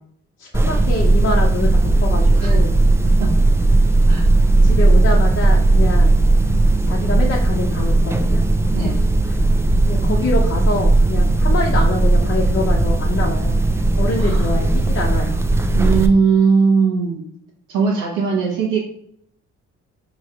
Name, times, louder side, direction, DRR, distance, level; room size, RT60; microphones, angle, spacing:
voice 1, 0.4-2.7 4.6-6.2 6.8-8.4 8.8-8.9 9.8-13.6 14.0-15.5, left 3 dB, 40° left, -3 dB, 0.8 m, -25 dB
sound 1, 0.5-16.1, right 2 dB, 10° right, 0.3 m, -16 dB
voice 2, 15.7-17.2 17.7-18.8, right 5 dB, 90° right, -3 dB, 1.0 m, -18 dB
4.8 x 3.1 x 2.8 m, 0.67 s
cardioid pair, 90°, 30 cm